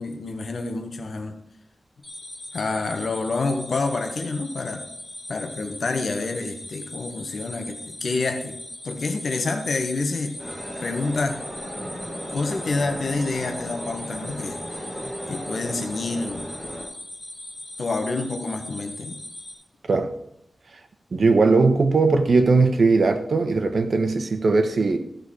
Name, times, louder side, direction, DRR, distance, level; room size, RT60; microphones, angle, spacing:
voice 1, 0.0-1.4 2.5-4.8 5.3-10.3 10.8-11.4 12.3-14.6 15.3-16.5 17.8-19.2, left 3 dB, 70° left, 1.4 m, -28 dB
sound 1, 2.0-19.5, left 1 dB, 45° left, 3.0 m, -39 dB
sound 2, 10.4-16.8, equal, 10° right, 5.7 m, -35 dB
voice 2, 21.1-25.0, right 3 dB, 70° right, 1.3 m, -19 dB
15.0 x 6.7 x 4.9 m
wide cardioid pair, 90°, 0 cm